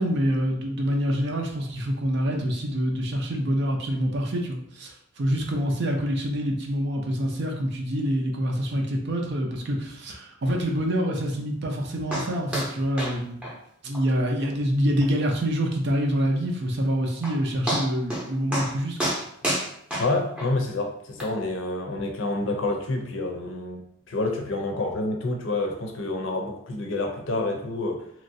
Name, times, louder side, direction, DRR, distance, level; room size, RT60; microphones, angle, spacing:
voice 1, 0.0-13.4 13.8-19.1, equal, 55° right, 2 dB, 0.5 m, -26 dB
sound 1, 12.1-12.3 12.5-12.7 13.0-13.2 13.4-13.5 13.9-14.0 14.4-14.5 15.0-15.1 16.8-16.9 17.2-17.4 17.7-18.2 18.5-18.7 19.0-20.5 21.2-21.3, right 1 dB, 5° right, 0.7 m, -28 dB
voice 2, 20.0-28.0, left 2 dB, 60° left, 3 dB, 0.5 m, -28 dB
3.0 x 2.5 x 2.6 m, 0.70 s
head